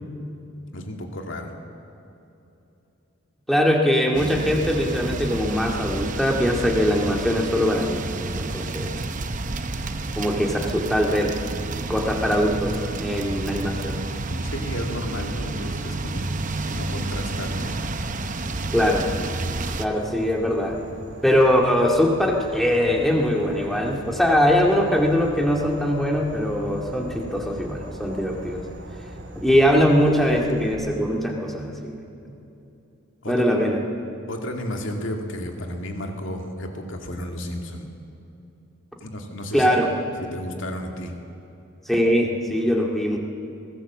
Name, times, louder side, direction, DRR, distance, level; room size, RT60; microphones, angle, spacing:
voice 1, 0.7-1.5 14.3-16.3 16.7-17.7 33.2-33.4 34.3-37.9 39.0-39.7 40.2-41.1, left 1 dB, 65° left, 3 dB, 2.4 m, -32 dB
voice 2, 3.5-8.9 10.2-11.3 11.9-14.0 18.7-19.0 19.8-20.8 21.2-28.6 29.4-32.0 33.3-33.8 39.5-39.9 41.9-43.2, equal, ahead, 0 dB, 2.0 m, -21 dB
sound 1, 4.1-19.9, right 2 dB, 35° right, 0.8 m, -30 dB
Insect / Frog, 19.9-30.7, right 1 dB, 55° right, 2.5 m, -40 dB
22.5 x 16.5 x 7.3 m, 2.9 s
head